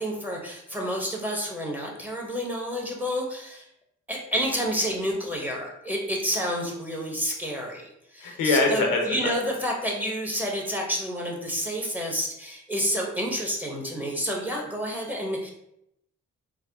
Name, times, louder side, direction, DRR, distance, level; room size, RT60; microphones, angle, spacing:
voice 1, 0.0-3.6 4.1-15.5, equal, 5° right, -1 dB, 1.0 m, -29 dB
voice 2, 8.2-9.3, left 3 dB, 90° left, 2 dB, 0.7 m, -23 dB
3.5 x 2.0 x 3.4 m, 0.79 s
supercardioid pair, 50°, 33 cm